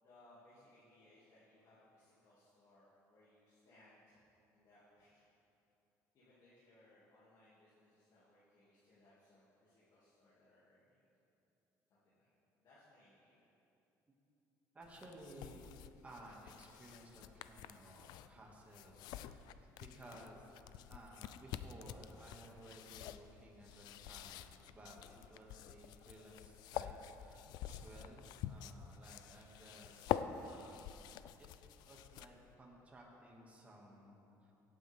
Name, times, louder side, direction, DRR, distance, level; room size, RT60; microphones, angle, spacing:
voice 1, 0.0-4.2 4.5-5.2 6.1-11.0 11.9-12.3 12.6-13.5, left 1 dB, 55° left, -9 dB, 2.6 m, -66 dB
voice 2, 14.7-15.7 16.0-20.5 20.9-24.4 24.7-30.8 31.4-31.5 31.9-34.5, right 1 dB, 20° right, -2 dB, 2.1 m, -57 dB
sound 1, 14.8-32.6, left 11 dB, 80° left, 0.4 m, -47 dB
17.0 x 8.7 x 3.6 m, 2.8 s
cardioid pair, 125°, 7 cm